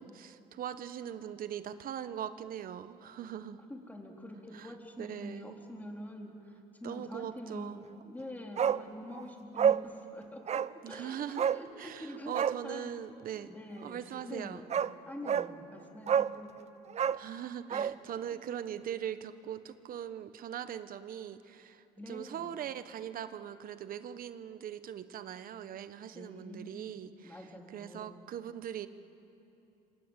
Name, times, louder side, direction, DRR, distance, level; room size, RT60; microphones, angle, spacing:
voice 1, 0.0-3.6 4.5-5.6 6.8-7.9 10.8-11.5 11.8-13.5 13.8-14.6 17.2-27.4 27.7-28.9, right 9 dB, 55° right, 12 dB, 1.2 m, -41 dB
voice 2, 3.7-12.3 12.6-12.9 13.3-14.7 15.1-16.5 17.7-17.8 18.3-18.4 22.0-22.5 26.1-26.9 27.2-28.2, left 1 dB, 10° left, 1 dB, 4.1 m, -46 dB
Bark, 8.6-8.8 9.1-9.2 9.6-9.8 10.5-10.7 11.4-11.6 12.3-12.6 14.2-14.3 14.7-14.9 15.3-15.5 16.1-16.4 16.9-17.9 18.2-18.3, right 8 dB, 40° right, 0.7 m, -28 dB
27.5 x 26.5 x 8.3 m, 2.8 s
cardioid pair, 110°, 17 cm